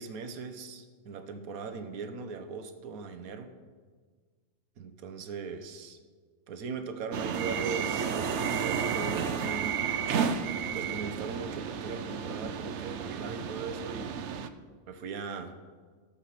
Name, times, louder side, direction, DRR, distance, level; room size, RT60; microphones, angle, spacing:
voice 1, 0.0-3.5 4.8-6.0 6.5-9.8 10.7-14.3 14.9-15.5, right 4 dB, 85° right, 8 dB, 1.3 m, -39 dB
sound 1, 7.1-14.5, right 7 dB, 60° right, 0.9 m, -32 dB
14.5 x 7.6 x 5.8 m, 1.5 s
omnidirectional pair, 1.5 m